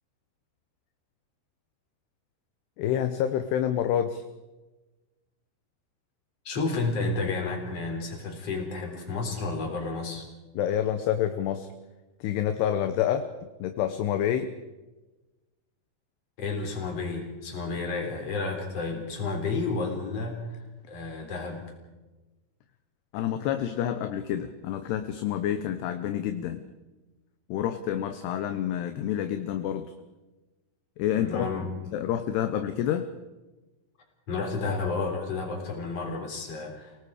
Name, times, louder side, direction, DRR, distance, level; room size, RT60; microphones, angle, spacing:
voice 1, 2.8-4.2 10.6-11.7 12.2-13.3 13.6-14.5 23.1-26.6 27.5-29.9 31.0-31.5 31.9-33.1, left 10 dB, 75° left, 8 dB, 2.7 m, -28 dB
voice 2, 6.4-10.3 16.4-21.7 31.1-32.0 34.3-37.0, left 3 dB, 35° left, 2 dB, 4.5 m, -31 dB
29.5 x 18.5 x 4.9 m, 1.1 s
omnidirectional pair, 5.5 m